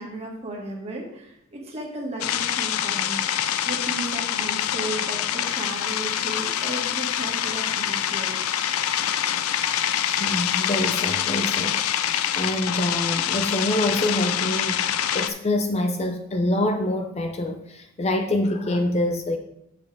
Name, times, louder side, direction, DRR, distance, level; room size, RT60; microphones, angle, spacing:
voice 1, 0.0-3.3 3.6-8.5, right 2 dB, 30° right, -2 dB, 1.8 m, -35 dB
sound 1, 2.2-15.3, left 10 dB, 85° left, 0.4 m, -25 dB
voice 2, 10.1-11.8 12.4-19.4, left 1 dB, 30° left, 6 dB, 0.5 m, -26 dB
7.6 x 6.9 x 3.4 m, 0.79 s
head